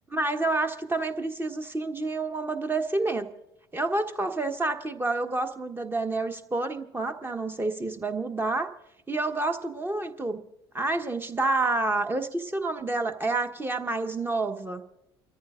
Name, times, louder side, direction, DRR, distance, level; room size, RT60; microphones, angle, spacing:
voice 1, 0.1-3.3 3.7-8.7 9.1-10.4 10.7-14.8, right 2 dB, 15° right, 7 dB, 1.3 m, -28 dB
29.5 x 14.0 x 2.5 m, 0.84 s
figure-of-eight pair, 55°, 14 cm